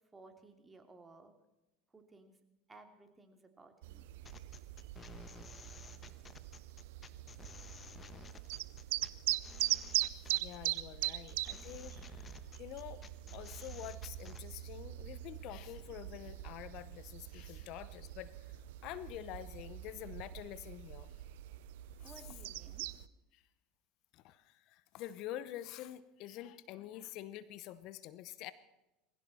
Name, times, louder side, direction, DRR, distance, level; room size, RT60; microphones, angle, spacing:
voice 1, 0.1-1.3 1.9-2.4 2.7-4.0 22.0-22.9, right 3 dB, 20° right, 6 dB, 2.8 m, -57 dB
sound 1, 3.8-23.1, right 16 dB, 70° right, 0.6 m, -41 dB
sound 2, 4.2-14.4, left 5 dB, 30° left, 1.2 m, -54 dB
voice 2, 10.2-12.3 12.6-13.0 13.3-18.3 18.8-21.1 22.0-22.1 23.3-23.4 24.1-28.5, left 13 dB, 60° left, 16 dB, 0.9 m, -47 dB
21.0 x 16.0 x 4.3 m, 0.97 s
hypercardioid pair, 85°, 0 cm